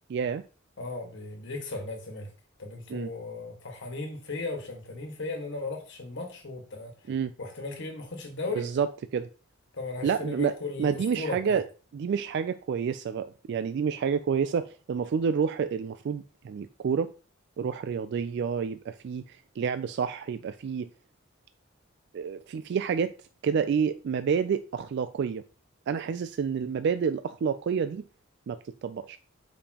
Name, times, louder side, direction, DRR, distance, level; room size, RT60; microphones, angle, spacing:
voice 1, 0.1-0.4 2.9-3.1 7.1-7.3 8.5-8.9 9.1-9.3 10.0-11.7 11.9-17.1 17.6-20.9 22.1-23.1 23.4-25.4 25.9-28.0 28.5-29.2, right 6 dB, 55° right, 0.3 m, -29 dB
voice 2, 0.8-2.3 2.6-6.9 7.4-8.7 9.7-11.6, left 3 dB, 60° left, 1.6 m, -36 dB
6.9 x 5.2 x 2.9 m
head